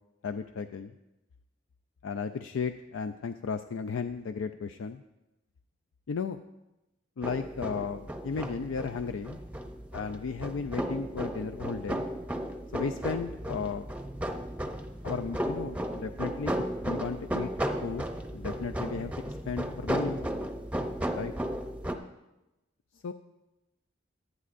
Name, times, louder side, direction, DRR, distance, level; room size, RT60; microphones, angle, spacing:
voice 1, 0.2-0.9 2.0-5.0 6.1-6.4 7.2-9.4 9.9-12.1 12.7-13.8 15.0-17.5 17.8-18.1 18.3-20.2 21.1-21.3 23.0-23.1, left 5 dB, 80° left, 8 dB, 0.4 m, -35 dB
sound 1, 7.2-21.9, equal, 5° right, 0.6 m, -34 dB
18.0 x 11.5 x 2.6 m, 0.98 s
head